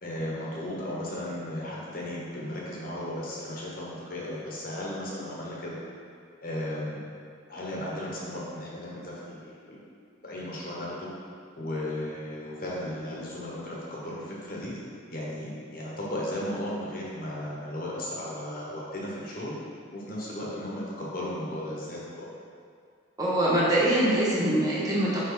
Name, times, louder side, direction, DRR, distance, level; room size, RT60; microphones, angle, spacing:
voice 1, 0.0-5.8 6.4-7.0 7.5-9.8 10.2-11.1 11.6-14.7 15.1-19.6 19.9-22.3, left 1 dB, 45° left, -5 dB, 1.3 m, -35 dB
voice 2, 23.2-25.3, right 1 dB, 20° right, -7 dB, 1.1 m, -23 dB
5.9 x 5.4 x 4.0 m, 2.3 s
head